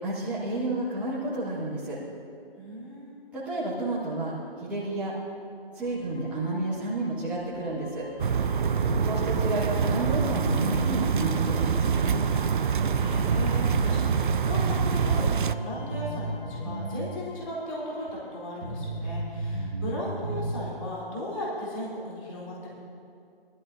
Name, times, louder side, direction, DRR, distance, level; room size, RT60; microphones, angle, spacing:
voice 1, 0.0-2.0 3.3-5.1 5.7-8.1 9.0-12.3, right 2 dB, 5° right, -13 dB, 2.1 m, -31 dB
voice 2, 2.6-3.2 12.9-22.8, left 1 dB, 35° left, -7 dB, 3.8 m, -36 dB
sound 1, 5.8-19.2, left 4 dB, 80° left, 2.9 m, -51 dB
sound 2, 8.2-15.5, right 6 dB, 55° right, 0.4 m, -25 dB
sound 3, 8.7-11.3 11.6-11.7 12.3-12.4 12.8-17.1 17.4-17.5 18.1-18.2 18.6-20.7, right 2 dB, 30° right, 1.8 m, -33 dB
19.0 x 13.5 x 2.7 m, 2.5 s
figure-of-eight pair, 155°, 30 cm